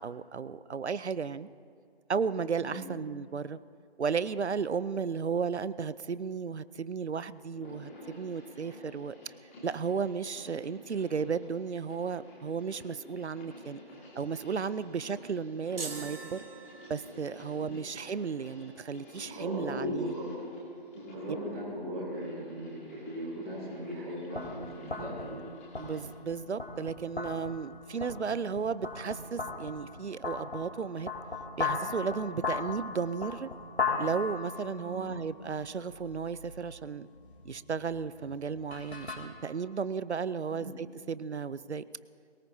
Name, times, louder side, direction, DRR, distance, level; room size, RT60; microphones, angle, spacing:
voice 1, 0.0-1.5 2.1-3.6 4.0-9.3 9.6-13.8 14.2-16.4 16.9-20.1 25.8-31.1 31.6-33.5 34.0-37.1 37.4-41.8, right 6 dB, 85° right, 16 dB, 0.7 m, -34 dB
sound 1, 7.4-26.1, left 1 dB, 15° left, 1.9 m, -51 dB
sound 2, 15.8-17.3, right 4 dB, 60° right, 1.9 m, -42 dB
voice 2, 19.3-20.4 20.9-25.4 34.8-35.0 40.5-40.7, equal, 15° right, -6 dB, 2.8 m, -38 dB
sound 3, 24.3-39.2, left 4 dB, 75° left, 3.5 m, -38 dB
22.5 x 19.5 x 2.8 m, 2.4 s
figure-of-eight pair, 165°, 33 cm